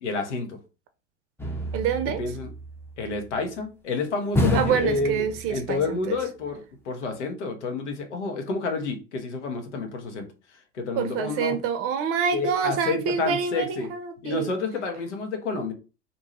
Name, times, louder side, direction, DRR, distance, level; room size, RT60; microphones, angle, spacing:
voice 1, 0.0-0.6 2.2-2.5 3.0-5.2 5.5-10.3 10.7-11.6 12.3-13.9 14.2-15.7, left 4 dB, 85° left, 0.8 m, -29 dB
sound 1, 1.4-3.1 4.4-5.9 6.1-6.2, left 1 dB, 5° left, 0.5 m, -28 dB
voice 2, 1.7-2.2 4.5-6.2 11.0-14.5, right 7 dB, 40° right, 0.6 m, -27 dB
2.6 x 2.2 x 2.9 m
hypercardioid pair, 85°, 34 cm